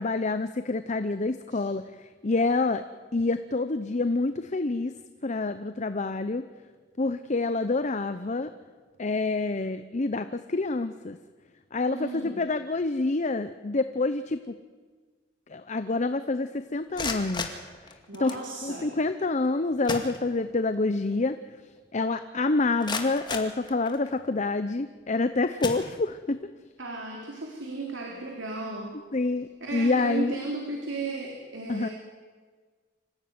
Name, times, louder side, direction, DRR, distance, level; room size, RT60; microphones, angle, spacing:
voice 1, 0.0-1.8 2.2-2.8 3.1-4.9 5.2-6.4 7.0-8.5 9.0-11.2 11.7-14.6 15.5-17.5 18.2-18.4 18.6-21.4 21.9-26.4 29.1-30.3 31.7-31.9, left 3 dB, 40° left, 10 dB, 0.8 m, -27 dB
voice 2, 11.9-12.4 18.1-18.9 26.8-29.0 29.6-31.9, right 2 dB, 90° right, 0 dB, 3.7 m, -35 dB
sound 1, 16.8-18.5 19.4-19.5 19.8-20.7 21.1-21.2 21.8-21.9 22.4-24.3 24.9-25.1 25.6-26.4, left 3 dB, 25° left, 2.2 m, -36 dB
25.5 x 16.0 x 9.5 m, 1.5 s
head